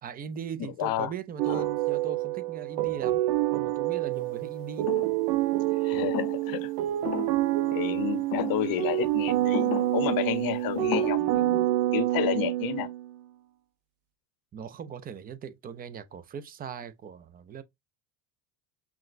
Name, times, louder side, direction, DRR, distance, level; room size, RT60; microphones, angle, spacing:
voice 1, 0.0-3.2 3.5-4.9 14.5-17.6, right 7 dB, 20° right, 0.3 m, -39 dB
voice 2, 0.6-1.1 1.5-1.7 5.8-6.7 7.7-12.9, left 12 dB, 45° left, 0.7 m, -31 dB
sound 1, 1.4-13.1, right 15 dB, 80° right, 0.7 m, -27 dB
sound 2, 4.9-5.2 6.0-6.6 7.0-7.4 8.3-8.7 9.5-10.0 10.7-11.1, left 10 dB, 80° left, 0.9 m, -34 dB
5.9 x 2.1 x 2.4 m
supercardioid pair, 110°, 49 cm